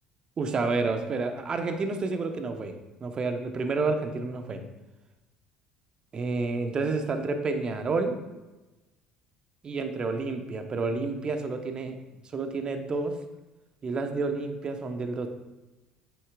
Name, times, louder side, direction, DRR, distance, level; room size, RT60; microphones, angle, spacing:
voice 1, 0.4-2.7 3.0-4.6 6.1-8.1 9.6-13.1 13.8-15.3, right 3 dB, 35° right, 6 dB, 1.2 m, -29 dB
9.7 x 9.0 x 2.5 m, 1.1 s
figure-of-eight pair, 60°, 3 cm